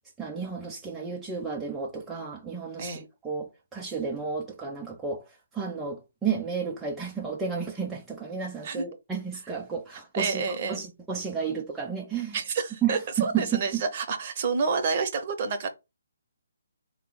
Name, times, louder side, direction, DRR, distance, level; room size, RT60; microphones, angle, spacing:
voice 1, 0.2-2.9 3.2-5.2 5.5-10.4 10.7-12.4 12.8-13.8, right 6 dB, 5° right, 0.4 m, -32 dB
voice 2, 10.1-10.8 12.3-15.7, right 5 dB, 35° right, 0.7 m, -29 dB
3.8 x 2.0 x 3.7 m
hypercardioid pair, 160°, 0 cm